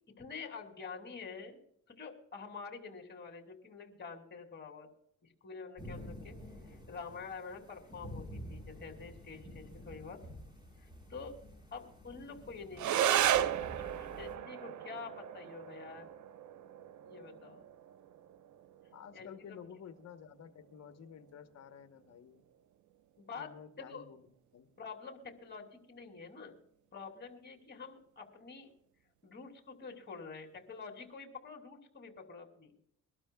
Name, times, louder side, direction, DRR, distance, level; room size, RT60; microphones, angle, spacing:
voice 1, 0.2-1.6 1.9-4.9 5.4-6.4 6.7-10.2 10.8-11.4 11.7-13.3 13.8-16.1 17.0-17.6 19.1-19.6 23.2-23.5 23.8-24.1 24.8-26.5 26.9-28.7 29.2-32.7, left 5 dB, 35° left, 4 dB, 3.0 m, -47 dB
sound 1, 5.8-14.4, equal, 15° right, 4.2 m, -50 dB
sound 2, 12.8-21.8, right 11 dB, 75° right, 0.7 m, -36 dB
voice 2, 18.9-22.4 23.3-24.7, left 8 dB, 60° left, 10 dB, 1.2 m, -52 dB
23.5 x 12.5 x 2.3 m, 0.74 s
cardioid pair, 90°, 30 cm